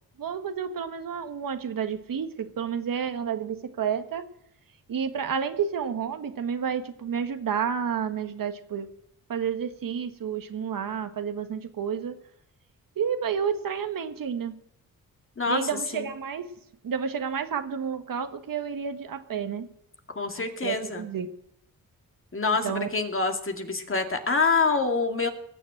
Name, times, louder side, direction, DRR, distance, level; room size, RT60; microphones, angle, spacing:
voice 1, 0.2-4.3 4.9-8.9 9.3-12.1 13.0-14.6 15.5-16.5 16.8-19.7 20.3-21.3 22.6-22.9, right 7 dB, 65° right, 8 dB, 1.5 m, -30 dB
voice 2, 20.2-21.0 22.3-22.7 22.9-25.3, left 4 dB, 35° left, 5 dB, 2.2 m, -26 dB
18.5 x 7.1 x 8.7 m, 0.73 s
cardioid pair, 65°, 36 cm